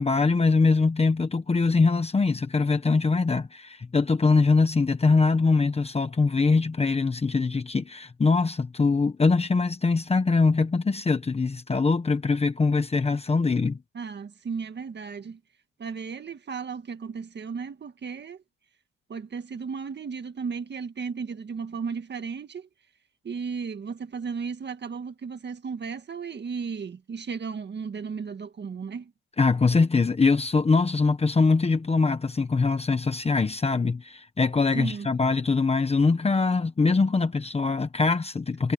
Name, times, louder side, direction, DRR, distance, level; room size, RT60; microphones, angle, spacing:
voice 1, 0.0-13.8 29.4-38.7, left 4 dB, 15° left, 1.1 m, -23 dB
voice 2, 13.9-15.4 15.8-18.4 19.1-22.7 23.2-29.1 34.7-35.1, right 5 dB, 30° right, 1.7 m, -35 dB
cardioid pair, 145°, 36 cm